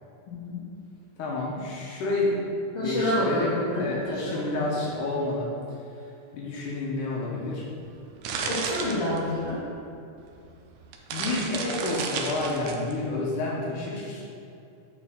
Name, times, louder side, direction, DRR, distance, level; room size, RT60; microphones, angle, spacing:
voice 1, 0.3-0.6 2.7-4.9 8.4-9.7, left 1 dB, 55° left, -9 dB, 1.9 m, -29 dB
voice 2, 1.2-2.4 2.8-3.5 3.8-5.5 6.3-7.7 11.1-14.3, left 2 dB, 75° left, -4 dB, 2.4 m, -29 dB
sound 1, 7.8-9.6 10.4-10.5 10.8-12.9, right 5 dB, 75° right, 2.0 m, -32 dB
8.6 x 5.0 x 3.8 m, 2.7 s
omnidirectional pair, 3.8 m